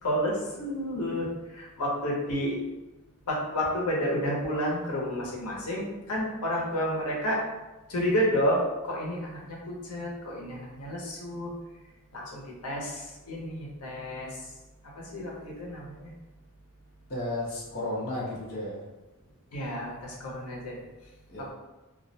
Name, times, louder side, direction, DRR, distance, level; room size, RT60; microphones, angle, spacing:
voice 1, 0.0-2.6 3.3-7.4 7.9-11.5 12.1-14.3 15.0-16.1 19.5-20.7 21.4-21.5, equal, 90° left, -3 dB, 0.7 m, -30 dB
voice 2, 17.1-18.8 21.3-21.5, left 1 dB, 45° left, -5 dB, 0.6 m, -33 dB
2.3 x 2.0 x 2.6 m, 1.1 s
head